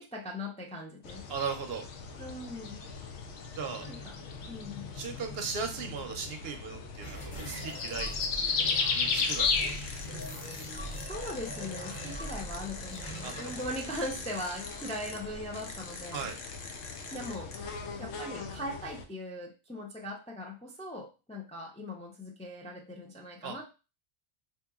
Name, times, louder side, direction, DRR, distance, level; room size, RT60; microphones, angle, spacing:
voice 1, 0.0-1.2 2.2-2.8 3.8-4.2 4.5-4.9 11.1-16.3 17.1-23.6, left 1 dB, 10° left, -1 dB, 0.3 m, -40 dB
sound 1, 1.0-19.0, left 5 dB, 85° left, 0.9 m, -36 dB
voice 2, 1.3-1.8 3.5-3.9 4.9-8.1 8.9-9.9 13.2-13.5 16.1-16.4 23.4-23.5, right 5 dB, 65° right, 6 dB, 0.8 m, -37 dB
sound 2, 7.0-15.2, right 1 dB, 40° left, 1.3 m, -43 dB
sound 3, 7.9-8.3 8.7-8.8 9.2-15.2 15.5-17.6, left 4 dB, 55° left, 0.7 m, -45 dB
4.2 x 2.8 x 2.3 m, 0.30 s
omnidirectional pair, 1.2 m